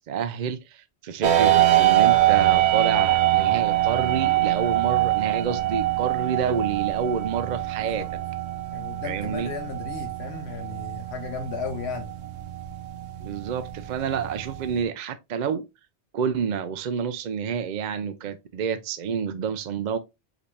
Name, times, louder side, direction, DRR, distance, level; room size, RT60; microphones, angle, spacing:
voice 1, 0.1-8.0 9.0-9.5 13.2-15.6 16.1-20.0, right 7 dB, 55° right, 0.5 m, -28 dB
sound 1, 1.2-14.8, right 14 dB, 90° right, 1.0 m, -24 dB
voice 2, 8.7-12.2, left 5 dB, 75° left, 1.0 m, -35 dB
5.0 x 2.7 x 3.2 m
omnidirectional pair, 1.1 m